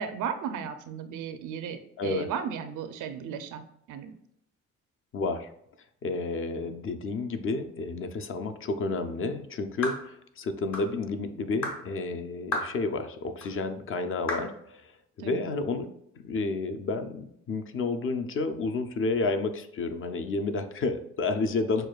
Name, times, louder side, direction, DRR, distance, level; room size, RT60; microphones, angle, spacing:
voice 1, 0.0-4.1 15.2-15.4, right 7 dB, 85° right, 9 dB, 0.5 m, -35 dB
voice 2, 2.0-2.3 5.1-5.5 6.0-14.9 15.2-15.9 16.2-21.9, left 3 dB, 45° left, 7 dB, 0.5 m, -30 dB
sound 1, 9.8-10.1 10.7-10.9 11.6-11.8 12.5-12.8 13.4-13.5 14.3-14.5, left 2 dB, 60° left, 1.2 m, -32 dB
6.3 x 2.3 x 2.3 m, 0.73 s
cardioid pair, 90°, 30 cm